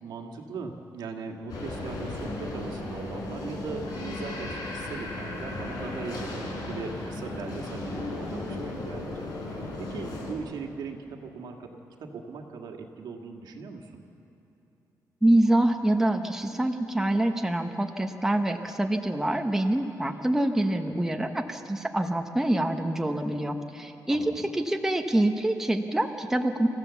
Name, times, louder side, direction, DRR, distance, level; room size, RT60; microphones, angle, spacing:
voice 1, 0.0-11.7 12.0-14.0 24.1-24.5, right 4 dB, 80° right, 2 dB, 1.9 m, -39 dB
sound 1, 1.5-10.3, left 2 dB, 70° left, 4.9 m, -35 dB
voice 2, 15.2-26.7, right 1 dB, 5° right, 4 dB, 0.9 m, -25 dB
27.0 x 15.0 x 7.1 m, 2.9 s
wide cardioid pair, 150°, 7 cm